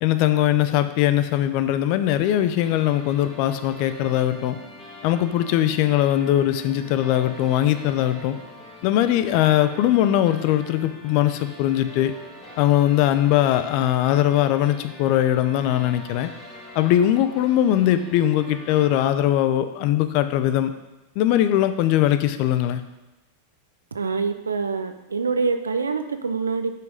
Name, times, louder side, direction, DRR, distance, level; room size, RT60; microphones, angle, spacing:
voice 1, 0.0-4.6 5.0-8.4 8.8-12.1 12.6-16.3 16.8-20.7 21.2-22.8, left 12 dB, 55° left, 11 dB, 0.6 m, -20 dB
sound 1, 1.5-19.0, left 1 dB, 15° left, 2.3 m, -44 dB
voice 2, 23.9-26.8, right 4 dB, 85° right, 9 dB, 0.5 m, -25 dB
6.0 x 5.8 x 5.2 m, 1.0 s
hypercardioid pair, 95°, 0 cm